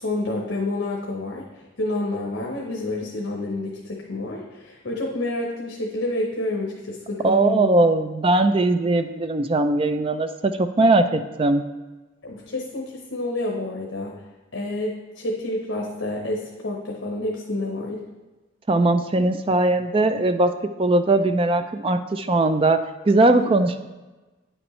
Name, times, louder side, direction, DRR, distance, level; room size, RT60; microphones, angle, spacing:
voice 1, 0.0-1.4 1.8-7.7 12.2-14.2 14.5-18.0, left 2 dB, 75° left, -1 dB, 0.9 m, -29 dB
voice 2, 7.2-11.6 18.7-20.5 20.8-22.8 23.1-23.9, right 2 dB, 25° right, 9 dB, 0.4 m, -20 dB
9.3 x 6.0 x 3.1 m, 1.2 s
head